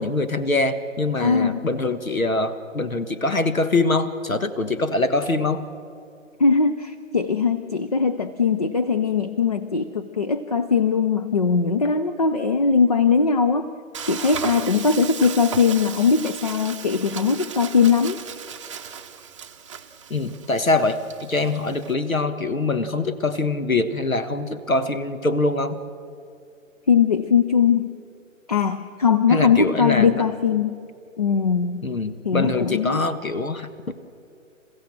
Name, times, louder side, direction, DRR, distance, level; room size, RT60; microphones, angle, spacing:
voice 1, 0.0-5.6 20.1-25.8 29.3-30.3 31.8-34.1, left 2 dB, 85° left, 12 dB, 1.5 m, -24 dB
voice 2, 1.2-1.6 6.4-13.7 14.1-18.2 26.9-27.9 28.5-30.8 31.2-31.9 32.2-33.0, left 5 dB, 30° left, 11 dB, 0.5 m, -20 dB
Frying (food), 13.9-21.9, right 7 dB, 25° right, 0.7 m, -36 dB
28.5 x 15.5 x 7.5 m, 2.5 s
figure-of-eight pair, 140°, 40 cm